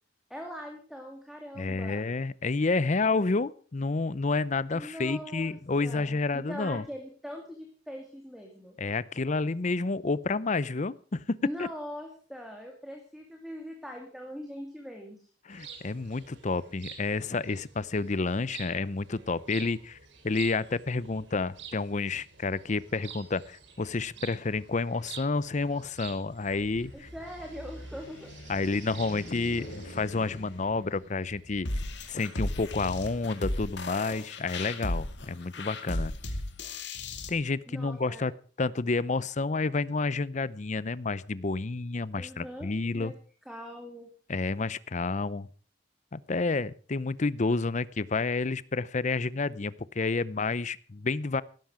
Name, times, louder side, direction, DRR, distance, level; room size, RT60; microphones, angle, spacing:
voice 1, 0.3-2.1 4.7-5.6 5.8-8.8 11.4-15.3 26.9-28.3 37.7-38.3 42.1-43.1 43.5-44.1, equal, ahead, 1 dB, 2.5 m, -42 dB
voice 2, 1.6-6.8 8.8-11.2 11.6-11.7 15.5-20.0 20.2-27.1 28.5-31.7 32.1-36.1 37.3-38.3 38.6-43.1 44.3-45.5 46.1-51.4, left 3 dB, 40° left, 19 dB, 0.6 m, -30 dB
sound 1, 15.5-30.0, right 7 dB, 70° right, 3.4 m, -49 dB
sound 2, 26.4-33.6, left 1 dB, 80° left, 5.2 m, -46 dB
sound 3, 31.7-37.3, left 1 dB, 65° left, 2.4 m, -34 dB
16.5 x 13.0 x 5.0 m, 0.41 s
head